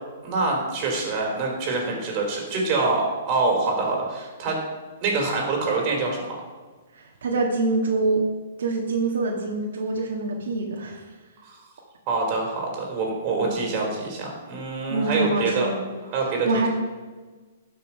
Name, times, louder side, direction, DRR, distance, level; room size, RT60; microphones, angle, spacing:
voice 1, 0.2-4.6 5.0-6.4 11.4-11.6 12.1-15.7 16.0-16.7, right 3 dB, 30° right, 0 dB, 3.3 m, -25 dB
voice 2, 6.9-8.2 8.6-11.0 13.4-13.6 14.9-15.8 16.4-16.7, right 3 dB, 80° right, 0 dB, 1.7 m, -25 dB
12.0 x 5.8 x 5.5 m, 1.3 s
hypercardioid pair, 155°, 0 cm